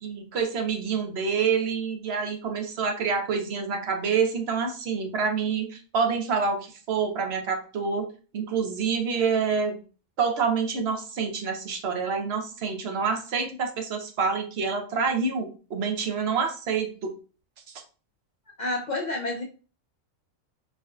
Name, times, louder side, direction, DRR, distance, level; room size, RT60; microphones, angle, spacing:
voice 1, 0.0-8.1 8.3-9.8 10.2-17.1, right 5 dB, 60° right, 4 dB, 0.8 m, -27 dB
voice 2, 18.6-19.4, left 2 dB, 60° left, -1 dB, 0.5 m, -29 dB
4.2 x 2.6 x 2.3 m, 0.36 s
omnidirectional pair, 1.4 m